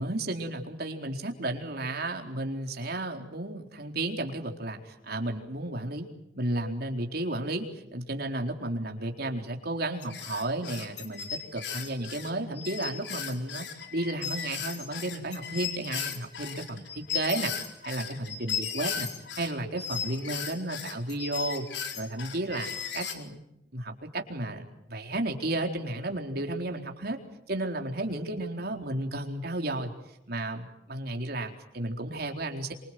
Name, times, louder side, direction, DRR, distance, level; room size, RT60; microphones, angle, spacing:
voice 1, 0.0-13.6 13.9-17.5 17.8-19.1 19.4-21.6 21.9-22.7 22.9-23.4 23.7-27.2 27.5-29.9 30.3-32.7, right 1 dB, 60° right, 3 dB, 4.3 m, -33 dB
sound 1, 10.0-19.5 19.8-23.1, left 7 dB, 75° left, 4.2 m, -36 dB
26.5 x 25.5 x 7.8 m, 0.82 s
head